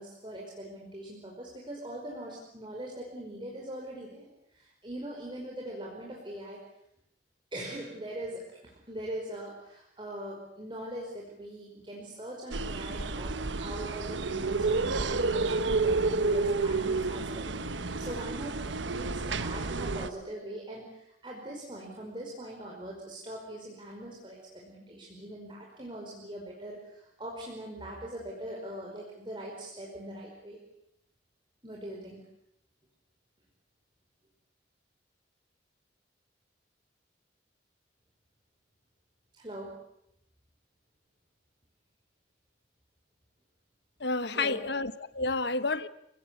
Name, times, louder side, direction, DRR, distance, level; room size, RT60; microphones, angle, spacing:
voice 1, 0.0-4.3 4.5-6.6 7.5-17.5 18.0-30.6 31.6-32.2 39.3-39.8 44.3-44.6, right 1 dB, 25° right, 5.3 m, -41 dB
sound 1, 12.5-20.1, right 3 dB, 80° right, 1.2 m, -30 dB
voice 2, 44.0-45.9, left 3 dB, 60° left, 1.2 m, -30 dB
29.5 x 19.0 x 8.6 m
head